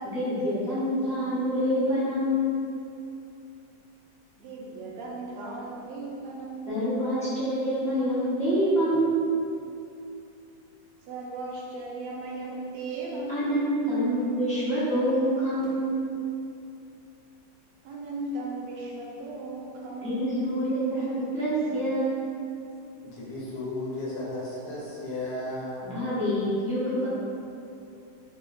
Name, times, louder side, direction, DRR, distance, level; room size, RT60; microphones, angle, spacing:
voice 1, 0.1-2.5 6.7-9.3 13.3-16.0 20.0-22.2 25.8-27.1, equal, 5° left, -14 dB, 0.5 m, -26 dB
voice 2, 4.4-6.9 8.9-9.0 11.1-13.9 17.8-21.2 21.6-21.8, right 1 dB, 80° right, -2 dB, 1.2 m, -36 dB
voice 3, 23.0-26.0, left 1 dB, 70° left, -5 dB, 1.2 m, -34 dB
3.1 x 2.0 x 3.8 m, 2.6 s
omnidirectional pair, 1.9 m